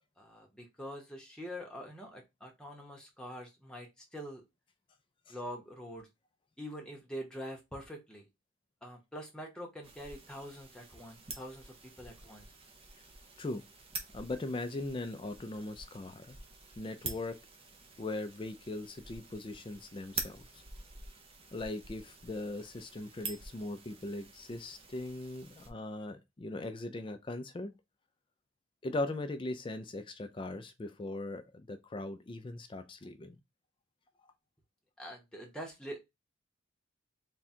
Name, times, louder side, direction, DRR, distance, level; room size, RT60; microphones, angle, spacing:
voice 1, 0.2-4.4 5.3-6.1 6.6-8.3 8.8-12.5 35.0-36.0, equal, 5° left, 0.9 m, -45 dB
sound 1, 9.8-25.7, right 4 dB, 25° right, 0.6 m, -47 dB
voice 2, 14.1-16.4 16.8-17.4 18.0-20.6 21.5-27.7 28.8-33.4, left 2 dB, 25° left, 0.3 m, -39 dB
3.6 x 2.3 x 4.2 m
head